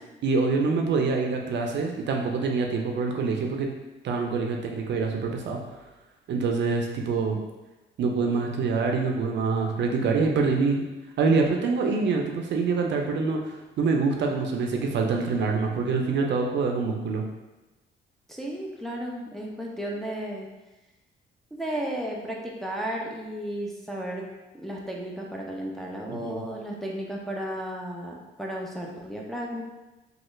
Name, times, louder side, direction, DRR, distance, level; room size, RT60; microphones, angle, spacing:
voice 1, 0.2-3.7 4.0-5.6 6.3-7.4 8.0-10.8 11.2-17.2 26.1-26.4, right 4 dB, 65° right, 2 dB, 0.5 m, -25 dB
voice 2, 18.3-20.5 21.5-24.3 24.5-29.6, right 1 dB, ahead, -2 dB, 0.5 m, -34 dB
3.1 x 2.4 x 3.1 m, 1.1 s
cardioid pair, 90°, 20 cm